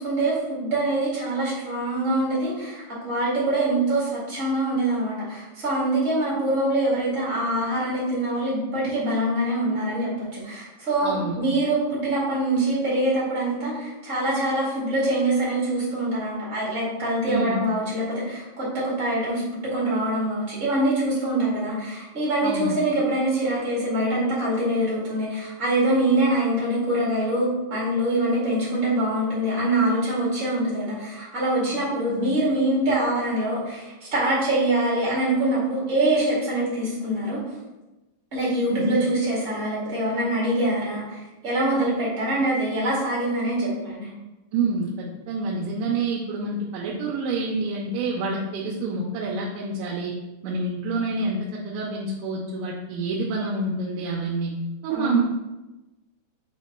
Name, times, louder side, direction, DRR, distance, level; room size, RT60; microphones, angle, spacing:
voice 1, 0.0-37.4 38.3-44.1 54.9-55.2, right 1 dB, 65° right, -7 dB, 0.7 m, -24 dB
voice 2, 11.0-11.4 17.2-17.6 22.4-22.8 32.1-32.3 38.7-39.1 44.5-50.1 50.4-54.5 54.8-55.2, right 3 dB, 90° right, -2 dB, 3.0 m, -27 dB
7.4 x 3.0 x 4.4 m, 1.1 s
omnidirectional pair, 5.0 m